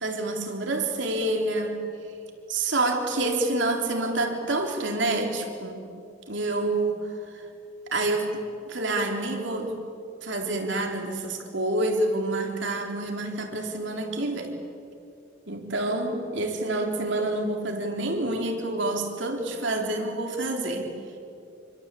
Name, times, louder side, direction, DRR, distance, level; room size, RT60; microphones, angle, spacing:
voice 1, 0.0-1.8 2.5-5.8 6.3-7.4 7.9-9.7 10.2-14.5 15.5-20.9, right 2 dB, 65° right, 2 dB, 4.0 m, -28 dB
27.5 x 24.5 x 8.7 m, 2.6 s
head